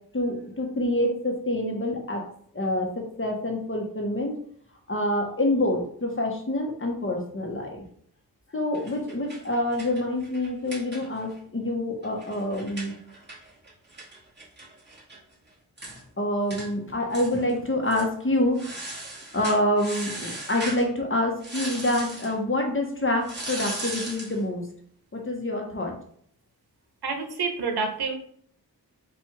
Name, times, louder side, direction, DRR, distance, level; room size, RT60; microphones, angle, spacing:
voice 1, 0.1-2.2 2.5-4.3 4.9-7.8 8.5-12.9 16.2-18.8 19.3-24.6 25.1-25.9, left 1 dB, 35° left, 1 dB, 1.0 m, -27 dB
sound 1, 8.7-11.4 11.7-11.8 12.0-15.2 15.5-15.6 15.8-16.0 16.5-16.7 17.1-17.5 17.9-18.1 18.6-20.8 21.4-22.3 23.2-24.4, right 1 dB, 25° right, 1.7 m, -37 dB
voice 2, 27.0-28.1, right 4 dB, 85° right, 4 dB, 0.9 m, -28 dB
4.6 x 2.5 x 4.6 m, 0.62 s
wide cardioid pair, 85°, 38 cm